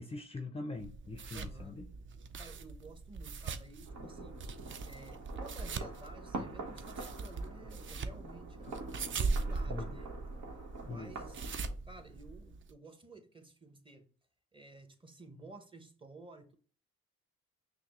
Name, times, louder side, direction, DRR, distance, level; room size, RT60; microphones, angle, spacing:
voice 1, 0.0-1.9 9.2-10.0 10.9-11.2, left 3 dB, 20° left, 0.5 m, -43 dB
sound 1, 0.8-12.7, right 4 dB, 40° right, 0.5 m, -40 dB
voice 2, 1.3-1.8 2.4-4.4 4.8-10.1 10.8-11.5 11.9-14.1 14.5-16.5, right 2 dB, 15° right, 0.9 m, -53 dB
sound 2, 3.9-11.7, right 3 dB, 75° right, 1.1 m, -46 dB
5.7 x 2.1 x 3.0 m
cardioid pair, 90°, 30 cm